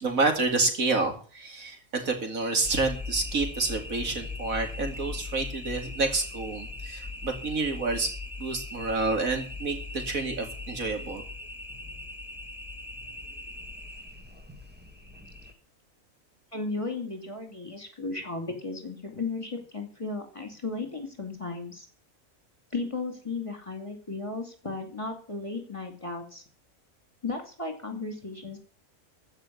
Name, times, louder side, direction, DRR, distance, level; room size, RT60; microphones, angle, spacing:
voice 1, 0.0-8.1 8.4-11.2, right 3 dB, 80° right, 4 dB, 2.9 m, -28 dB
sound 1, 2.6-15.5, left 3 dB, 5° right, 1.6 m, -39 dB
voice 2, 16.5-21.9 22.7-26.4 27.2-28.6, left 3 dB, 25° left, 5 dB, 2.5 m, -35 dB
15.0 x 5.5 x 9.3 m, 0.39 s
omnidirectional pair, 1.4 m